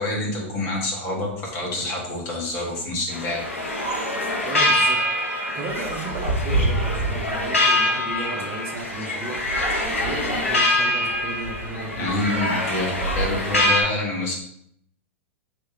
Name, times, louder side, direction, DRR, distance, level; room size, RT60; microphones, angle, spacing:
voice 1, 0.0-3.5 12.0-14.4, left 2 dB, 35° left, -2 dB, 1.8 m, -27 dB
sound 1, 3.1-13.8, left 1 dB, 85° left, 1.2 m, -24 dB
voice 2, 4.4-5.0 5.5-9.4 10.0-12.5, right 3 dB, 35° right, 1 dB, 0.8 m, -34 dB
3.4 x 3.4 x 4.5 m, 0.69 s
figure-of-eight pair, 100°, 7 cm